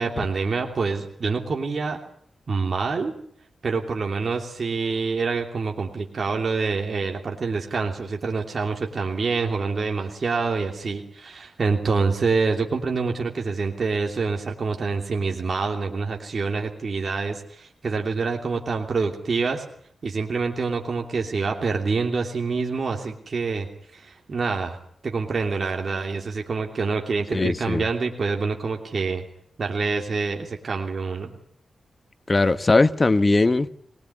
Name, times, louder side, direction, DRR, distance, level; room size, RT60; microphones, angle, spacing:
voice 1, 0.0-2.0 2.5-3.1 3.6-19.6 20.0-23.7 23.9-24.8 25.0-29.2 29.6-31.3, right 4 dB, 50° right, 2 dB, 3.0 m, -26 dB
voice 2, 27.3-27.8 32.3-33.7, left 3 dB, 30° left, 12 dB, 1.1 m, -19 dB
24.5 x 20.0 x 9.7 m, 0.67 s
wide cardioid pair, 105°, 0 cm